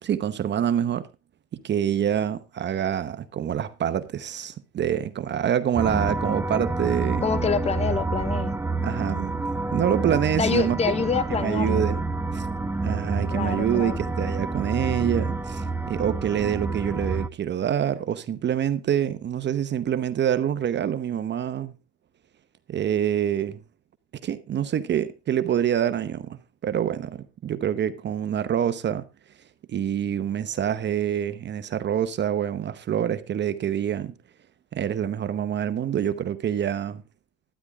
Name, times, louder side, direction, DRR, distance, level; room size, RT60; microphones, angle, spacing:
voice 1, 0.0-1.1 1.6-7.2 8.8-9.4 9.7-10.8 11.4-12.0 12.3-12.5 12.8-21.7 22.7-23.6 24.2-29.0 29.7-34.1 34.7-37.0, right 9 dB, 30° right, 0.9 m, -26 dB
sound 1, 5.7-17.3, right 3 dB, 5° right, 0.6 m, -28 dB
voice 2, 7.2-8.5 10.4-11.8 13.3-14.0, left 5 dB, 20° left, 1.0 m, -26 dB
12.5 x 9.9 x 3.5 m
supercardioid pair, 120°, 35 cm